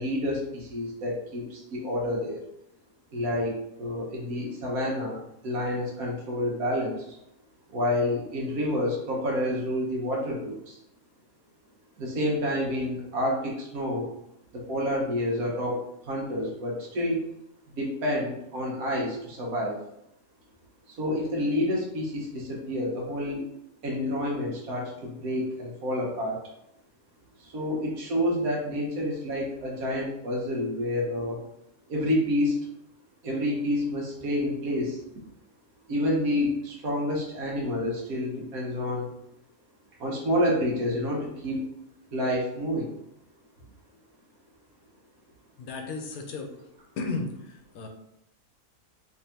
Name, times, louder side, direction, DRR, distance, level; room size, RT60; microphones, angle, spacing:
voice 1, 0.0-2.4 3.1-7.0 7.7-10.7 12.0-14.1 14.5-15.8 16.1-17.2 17.8-19.8 21.0-23.4 23.8-26.4 27.4-31.4 31.9-32.6 33.2-35.0 35.9-39.1 40.0-41.6 42.1-42.9, left 1 dB, 80° right, -2 dB, 1.5 m, -28 dB
voice 2, 45.6-46.5 47.0-47.9, left 3 dB, 85° left, 3 dB, 1.1 m, -34 dB
3.5 x 3.2 x 2.8 m, 0.79 s
omnidirectional pair, 1.5 m